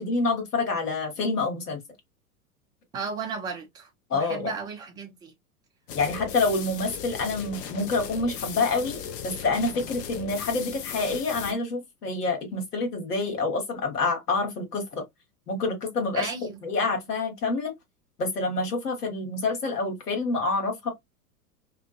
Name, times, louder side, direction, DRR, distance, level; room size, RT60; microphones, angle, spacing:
voice 1, 0.0-1.8 4.1-4.5 5.9-15.0 15.5-17.7 18.2-20.9, left 3 dB, 80° left, 1.2 m, -27 dB
voice 2, 2.9-5.3 16.1-16.6, right 5 dB, 10° right, 0.5 m, -35 dB
sound 1, 5.9-11.5, left 8 dB, 40° left, 0.5 m, -37 dB
2.4 x 2.3 x 2.4 m
figure-of-eight pair, 90°, 47 cm